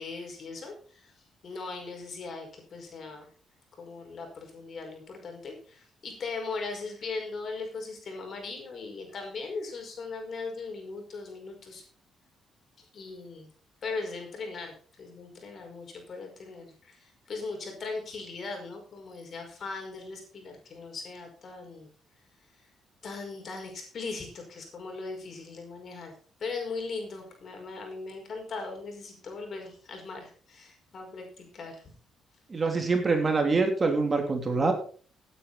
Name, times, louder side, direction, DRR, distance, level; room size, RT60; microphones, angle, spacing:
voice 1, 0.0-3.3 3.8-11.8 12.8-13.5 13.8-21.9 22.5-22.6 23.0-26.1 26.4-31.9, left 4 dB, 50° left, 3 dB, 5.1 m, -39 dB
voice 2, 32.5-34.7, right 3 dB, 30° right, 4 dB, 3.1 m, -25 dB
16.0 x 9.2 x 4.1 m, 0.43 s
cardioid pair, 90°, 0 cm